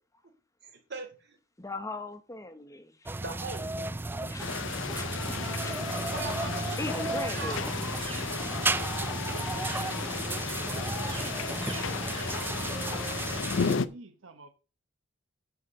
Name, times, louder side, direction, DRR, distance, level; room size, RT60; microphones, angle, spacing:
voice 1, 0.6-1.1 3.2-4.3 4.6-4.7 5.7-7.7, right 3 dB, 60° right, 3.1 m, -41 dB
voice 2, 1.6-2.9 4.3-4.4 4.9-5.1 5.6-6.0 6.8-7.7, left 2 dB, 15° left, 0.8 m, -38 dB
sound 1, 3.1-13.8, right 2 dB, 10° right, 0.4 m, -33 dB
sound 2, 4.4-13.9, left 6 dB, 65° left, 0.5 m, -34 dB
sound 3, 8.0-13.5, right 5 dB, 30° right, 2.2 m, -49 dB
voice 3, 11.8-14.5, right 2 dB, 85° right, 1.1 m, -51 dB
9.4 x 4.7 x 6.7 m
head